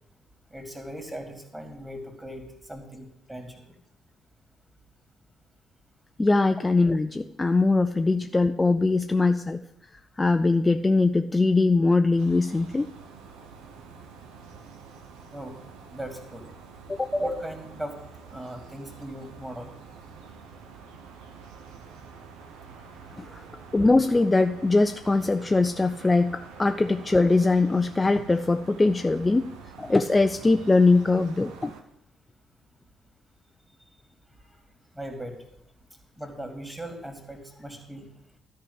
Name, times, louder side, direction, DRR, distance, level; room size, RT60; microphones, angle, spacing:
voice 1, 0.5-3.8 15.3-15.6 15.9-16.5 17.1-18.0 18.3-19.7 34.9-35.3 36.2-38.1, equal, 10° right, 4 dB, 2.4 m, -37 dB
voice 2, 6.2-9.6 9.9-12.9 16.9-17.1 23.2-23.4 23.7-29.5 29.8-31.7, left 3 dB, 20° left, 8 dB, 0.4 m, -22 dB
sound 1, 12.2-31.8, right 5 dB, 65° right, 0.9 m, -47 dB
13.5 x 4.7 x 8.0 m, 0.82 s
figure-of-eight pair, 45°, 0 cm